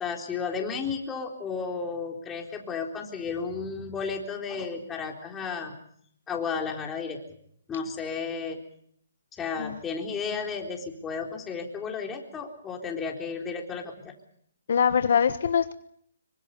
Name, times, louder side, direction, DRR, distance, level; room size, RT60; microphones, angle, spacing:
voice 1, 0.0-5.8 6.3-7.2 7.7-8.6 9.4-14.1, left 5 dB, 10° left, 1 dB, 3.9 m, -33 dB
voice 2, 14.7-15.7, left 7 dB, 60° left, 10 dB, 1.4 m, -23 dB
26.0 x 24.0 x 5.5 m, 0.65 s
hypercardioid pair, 155°, 0 cm